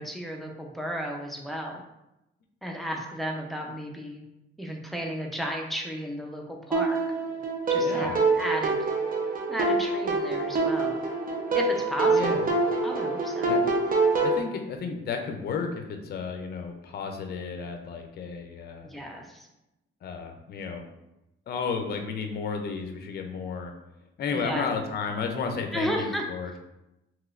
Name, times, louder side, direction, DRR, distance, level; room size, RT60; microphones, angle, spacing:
voice 1, 0.0-1.8 2.6-4.2 4.6-7.0 7.7-8.8 9.5-11.0 11.5-12.4 12.8-13.6 18.8-19.5 24.3-24.7 25.7-26.2, equal, ahead, 0 dB, 0.5 m, -33 dB
sound 1, 6.7-14.4, right 3 dB, 45° right, 0.6 m, -25 dB
voice 2, 7.8-8.2 12.1-12.5 13.4-13.6 14.2-18.9 20.0-20.8 21.5-23.7 24.2-26.6, left 5 dB, 55° left, 5 dB, 0.5 m, -33 dB
3.0 x 2.9 x 2.4 m, 0.90 s
cardioid pair, 90°, 20 cm